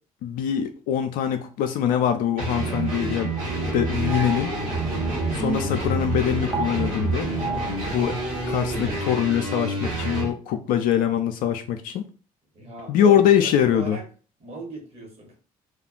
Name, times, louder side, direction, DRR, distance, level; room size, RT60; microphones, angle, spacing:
voice 1, 0.2-3.3 3.7-4.5 5.3-7.3 7.9-8.2 8.5-12.0 12.9-14.0, left 9 dB, 50° left, 0.4 m, -23 dB
sound 1, 2.4-10.3, right 2 dB, 70° right, 1.0 m, -28 dB
sound 2, 3.4-9.0, right 2 dB, 10° right, 0.5 m, -34 dB
voice 2, 12.5-14.1 14.4-15.4, right 2 dB, 35° right, 1.1 m, -38 dB
2.3 x 2.2 x 3.7 m
figure-of-eight pair, 50°, 19 cm